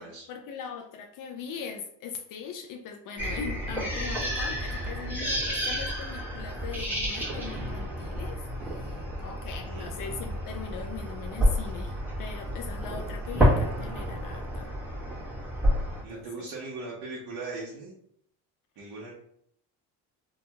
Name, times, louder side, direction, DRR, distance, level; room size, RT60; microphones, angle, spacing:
voice 1, 0.0-14.7 16.1-16.5, left 6 dB, 55° left, 5 dB, 0.5 m, -40 dB
sound 1, 3.2-16.0, equal, 5° right, 1.3 m, -30 dB
voice 2, 9.6-9.9 16.0-17.9 18.8-19.1, right 3 dB, 60° right, -4 dB, 0.9 m, -39 dB
2.9 x 2.6 x 2.3 m, 0.68 s
supercardioid pair, 85°, 40 cm